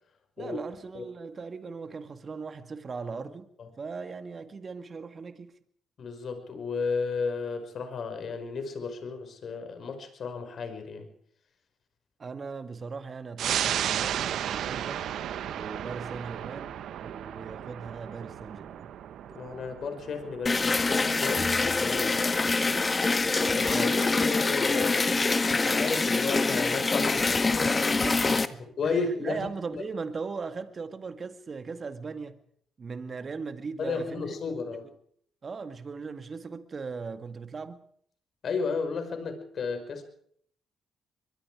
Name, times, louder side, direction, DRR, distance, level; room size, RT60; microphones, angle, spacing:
voice 1, 0.4-3.5 3.8-5.6 12.2-15.1 15.5-18.9 23.7-24.0 28.0-32.4 32.8-34.4 34.8-34.9 35.4-37.9, right 4 dB, 40° right, 2.0 m, -38 dB
voice 2, 6.0-11.1 19.3-22.9 23.6-28.1 28.8-29.8 33.8-34.9 38.4-40.0, left 4 dB, 55° left, 5.4 m, -33 dB
sound 1, 13.4-24.4 24.7-24.8, right 10 dB, 70° right, 1.2 m, -35 dB
sound 2, 20.5-28.5, left 3 dB, 30° left, 1.6 m, -25 dB
23.0 x 22.5 x 4.9 m
supercardioid pair, 65°, 0 cm